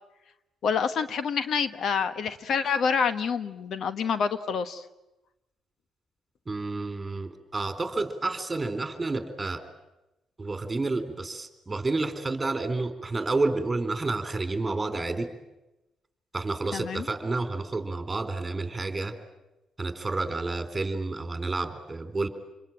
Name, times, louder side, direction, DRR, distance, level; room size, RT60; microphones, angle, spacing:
voice 1, 0.6-4.8 16.7-17.1, left 6 dB, 65° left, 12 dB, 1.2 m, -27 dB
voice 2, 6.5-9.6 10.4-15.3 16.3-19.1 19.8-22.3, right 3 dB, 20° right, 8 dB, 3.8 m, -30 dB
27.5 x 22.5 x 8.9 m, 0.97 s
cardioid pair, 90°, 0 cm